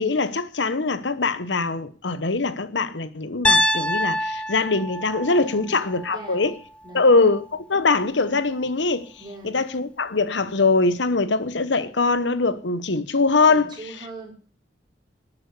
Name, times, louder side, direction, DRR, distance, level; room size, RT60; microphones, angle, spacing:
voice 1, 0.0-6.5 6.9-9.1 9.4-13.7, left 3 dB, 80° left, 1.1 m, -22 dB
Piano, 3.4-7.5, left 1 dB, 5° left, 0.7 m, -26 dB
voice 2, 5.3-5.8 6.1-6.5 6.8-7.2 9.2-9.6 13.5-14.3, right 2 dB, 25° right, 5.1 m, -40 dB
13.5 x 8.7 x 8.3 m
head